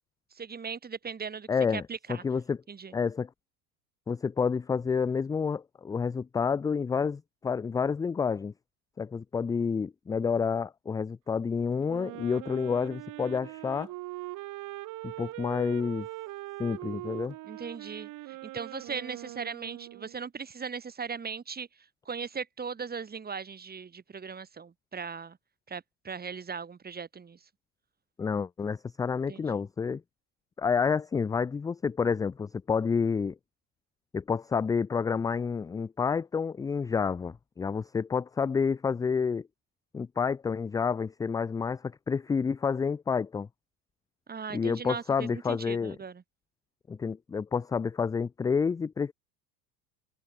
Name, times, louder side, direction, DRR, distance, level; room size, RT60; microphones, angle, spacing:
voice 1, 0.3-2.2 2.7-2.9 17.4-21.7 22.1-25.4 25.7-27.4 29.3-29.6 44.3-46.2, right 6 dB, 20° right, 1.9 m, -38 dB
voice 2, 1.5-1.8 2.1-2.6 2.9-3.3 4.1-8.5 9.0-13.9 15.0-16.1 16.6-17.3 28.2-30.0 30.6-33.4 34.1-39.5 39.9-43.5 44.5-46.0 46.9-49.1, left 5 dB, 10° left, 0.4 m, -29 dB
Wind instrument woodwind instrument, 11.8-20.2, right 18 dB, 40° right, 1.0 m, -41 dB
hypercardioid pair, 75°, 49 cm